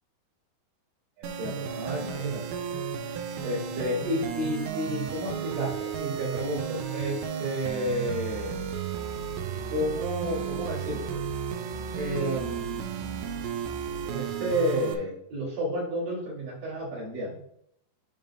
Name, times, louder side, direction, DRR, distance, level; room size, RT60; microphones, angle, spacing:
voice 1, 1.2-2.4 3.0-8.5 9.7-11.2 11.9-13.2 14.1-17.4, equal, 55° right, -10 dB, 3.5 m, -31 dB
sound 1, 1.2-14.9, right 7 dB, 85° right, 2.2 m, -33 dB
7.2 x 3.8 x 5.3 m, 0.75 s
omnidirectional pair, 5.2 m